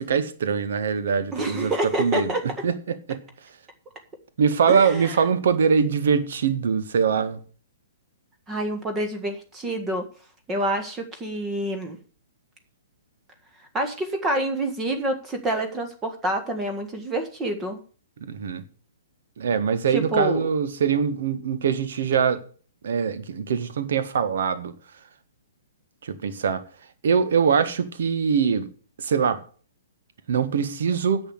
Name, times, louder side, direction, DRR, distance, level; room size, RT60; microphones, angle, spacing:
voice 1, 0.0-1.7 2.0-2.3 2.6-3.2 4.4-7.4 18.2-18.6 19.4-22.4 22.8-24.7 26.0-26.6 27.0-28.7 29.0-29.4 30.3-31.2, right 6 dB, 55° right, 1.6 m, -23 dB
voice 2, 1.3-2.4 4.7-5.2 8.5-10.1 10.5-12.0 13.7-17.8 19.9-20.5, right 1 dB, 15° right, 1.7 m, -27 dB
10.5 x 7.1 x 8.0 m
figure-of-eight pair, 120°, 0 cm